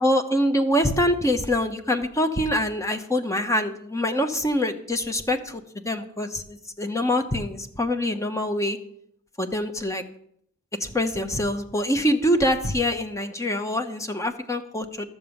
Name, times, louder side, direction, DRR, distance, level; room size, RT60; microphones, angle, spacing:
voice 1, 0.0-8.8 9.4-10.0 10.8-15.1, left 1 dB, 15° left, 7 dB, 0.9 m, -25 dB
13.0 x 6.8 x 7.0 m, 0.69 s
head